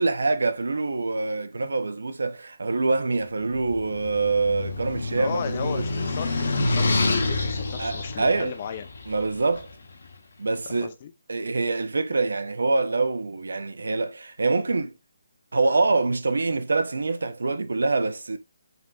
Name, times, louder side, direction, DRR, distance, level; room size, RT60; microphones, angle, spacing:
voice 1, 0.0-5.8 7.8-8.5 9.1-9.7 10.4-10.9 11.3-14.9 15.5-18.4, right 3 dB, 85° right, 0.5 m, -25 dB
sound 1, 3.5-9.7, left 2 dB, 70° left, 0.7 m, -27 dB
voice 2, 5.2-8.9 10.8-11.1, left 8 dB, 35° left, 0.4 m, -35 dB
4.0 x 2.7 x 2.3 m
hypercardioid pair, 160°, 0 cm